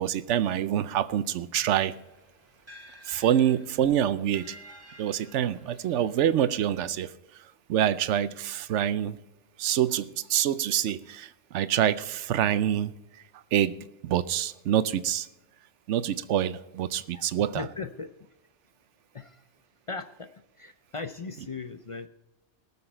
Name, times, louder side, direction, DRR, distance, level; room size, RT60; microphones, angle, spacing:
voice 1, 0.0-1.9 3.1-4.6 5.0-7.1 7.7-9.2 9.6-12.9 13.5-13.8 14.0-15.3 15.9-17.7, right 10 dB, 85° right, 0.9 m, -26 dB
sound 1, 1.7-6.9, equal, 10° right, 2.2 m, -52 dB
voice 2, 17.5-18.1 19.1-19.4 19.9-20.3 20.6-22.1, left 4 dB, 40° left, 0.4 m, -37 dB
19.0 x 7.1 x 4.4 m
omnidirectional pair, 1.2 m